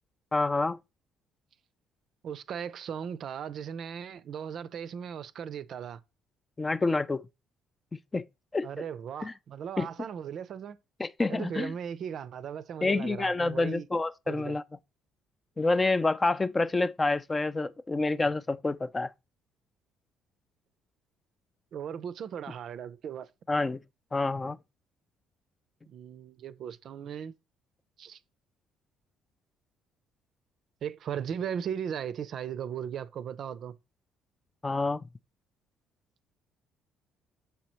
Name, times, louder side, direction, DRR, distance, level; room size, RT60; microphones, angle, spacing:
voice 1, 0.3-0.8 6.6-7.3 8.1-8.3 8.5-8.7 9.2-9.3 9.8-9.9 11.0-11.7 12.8-14.6 15.6-19.1 23.5-23.8 24.1-24.6 34.6-35.0, left 3 dB, 25° left, 0.3 m, -28 dB
voice 2, 2.2-6.0 8.6-10.8 11.3-13.9 14.3-14.6 21.7-23.3 25.9-27.4 28.0-28.2 30.8-33.7, right 8 dB, 55° right, 0.4 m, -37 dB
6.9 x 4.9 x 2.9 m
figure-of-eight pair, 50°, 0 cm